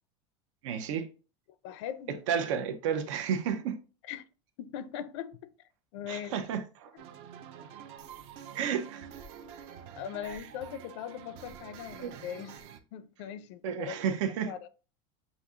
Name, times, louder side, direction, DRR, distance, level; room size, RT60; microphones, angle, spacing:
voice 1, 0.6-1.1 2.1-3.8 6.1-6.9 8.5-9.1 10.2-10.5 12.0-12.2 13.6-14.5, right 8 dB, 80° right, 0.8 m, -32 dB
voice 2, 1.6-2.2 4.1-4.2 4.6-5.5 5.9-6.4 10.0-12.6 12.9-14.2 14.5-14.7, left 9 dB, 65° left, 0.4 m, -40 dB
sound 1, 7.0-12.8, right 8 dB, 40° right, 0.4 m, -47 dB
6.9 x 2.7 x 2.4 m
supercardioid pair, 170°, 16 cm